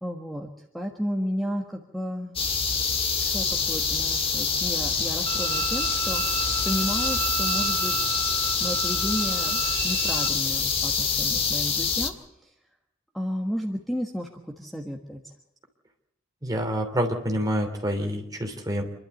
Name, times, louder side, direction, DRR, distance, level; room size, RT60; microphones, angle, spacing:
voice 1, 0.0-0.5 0.7-2.4 3.2-6.4 6.6-8.1 8.6-12.1 12.4-12.5 13.1-14.3 14.6-15.3, equal, ahead, 1 dB, 1.5 m, -32 dB
sound 1, 2.4-12.1, left 5 dB, 30° left, 1.8 m, -26 dB
Bowed string instrument, 5.3-10.3, right 6 dB, 70° right, 1.8 m, -32 dB
voice 2, 16.4-18.8, equal, 20° right, 3 dB, 3.0 m, -27 dB
27.0 x 12.0 x 8.4 m, 0.87 s
head